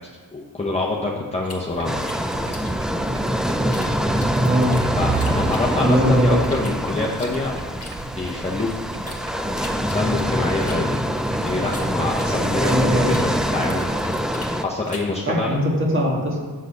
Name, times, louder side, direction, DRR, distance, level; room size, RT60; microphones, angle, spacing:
voice 1, 0.3-2.0 5.0-7.6 8.2-8.7 9.0-9.2 9.9-10.9 11.4-14.0 14.6-15.6, left 2 dB, 15° left, -4 dB, 0.8 m, -26 dB
sound 1, 1.4-3.9 4.2-6.0 6.4-9.2 9.6-12.8 13.1-15.2, left 2 dB, 35° left, 1.5 m, -41 dB
sound 2, 1.7-14.2, right 5 dB, 55° right, 0.7 m, -35 dB
sound 3, 1.8-14.6, equal, ahead, 0.3 m, -24 dB
voice 2, 4.4-4.7 5.8-6.4 12.6-13.1 15.3-16.4, equal, 30° right, -1 dB, 1.6 m, -20 dB
8.3 x 4.0 x 6.5 m, 1.4 s
wide cardioid pair, 95°, 42 cm